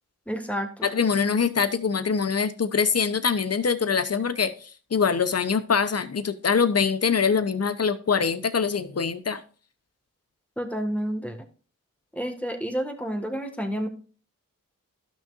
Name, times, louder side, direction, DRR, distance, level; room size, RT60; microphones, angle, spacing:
voice 1, 0.3-0.9 10.6-11.4 12.1-13.9, equal, 5° left, 1.9 m, -30 dB
voice 2, 0.8-9.4, left 6 dB, 50° left, 0.9 m, -24 dB
12.0 x 6.1 x 2.6 m
cardioid pair, 45°, 33 cm